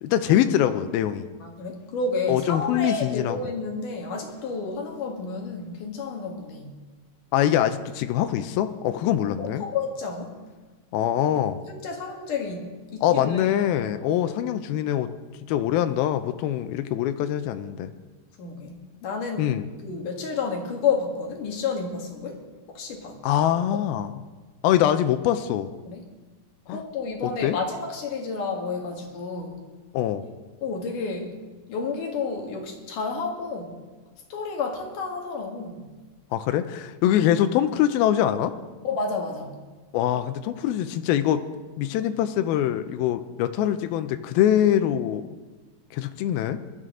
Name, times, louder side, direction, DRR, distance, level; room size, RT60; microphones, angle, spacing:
voice 1, 0.0-1.2 2.3-3.4 7.3-9.7 10.9-11.6 13.0-15.1 15.5-17.9 19.4-19.7 23.2-24.1 24.6-25.7 26.7-26.8 27.4-27.6 29.9-30.2 36.3-38.5 39.9-41.4 41.8-45.2 45.9-46.6, left 11 dB, 90° left, 9 dB, 2.5 m, -23 dB
voice 2, 1.4-6.8 9.4-10.3 11.3-11.4 11.7-13.6 18.4-18.8 19.0-19.4 19.8-22.4 22.7-23.2 25.8-26.0 26.7-29.6 30.6-31.3 31.7-33.8 34.3-35.9 38.8-39.6, left 4 dB, 65° left, 1 dB, 3.1 m, -30 dB
22.0 x 12.5 x 3.8 m, 1.3 s
omnidirectional pair, 4.3 m